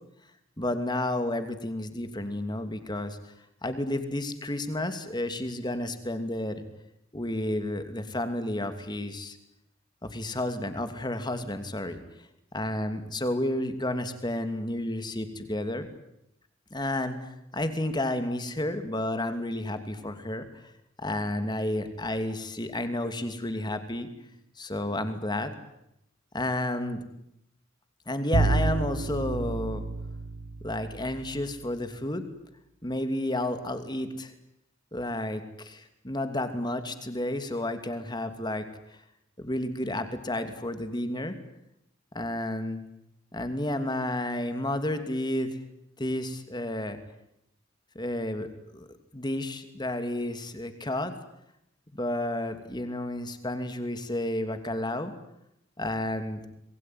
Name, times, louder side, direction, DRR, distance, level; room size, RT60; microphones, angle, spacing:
voice 1, 0.6-3.2 3.6-6.6 7.1-9.4 10.0-12.0 12.5-15.9 16.7-20.5 21.0-24.1 24.6-25.5 26.3-27.0 28.1-29.8 30.6-32.3 32.8-34.3 34.9-38.6 39.4-41.4 42.1-42.8 43.3-45.6 46.0-47.0 47.9-48.9 49.1-51.1 51.9-55.1 55.8-56.4, left 1 dB, 20° left, 9 dB, 2.7 m, -31 dB
Bowed string instrument, 28.3-31.4, right 3 dB, 70° right, 0.9 m, -29 dB
27.0 x 22.0 x 9.4 m, 0.81 s
head